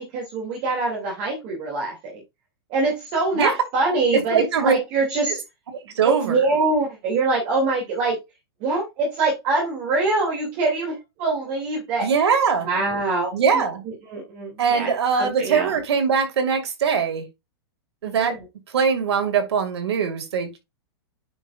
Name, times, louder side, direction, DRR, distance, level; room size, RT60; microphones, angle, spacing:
voice 1, 0.0-2.2 2.7-5.4 6.2-8.2 8.6-12.1 12.6-15.8 18.0-18.4, right 3 dB, 35° right, 2.9 m, -24 dB
voice 2, 4.3-4.8 6.0-6.4 12.0-12.7 13.3-13.8 14.6-17.2 18.0-18.3 18.7-20.6, right 6 dB, 90° right, 2.5 m, -21 dB
9.8 x 5.1 x 2.6 m
supercardioid pair, 160°, 13 cm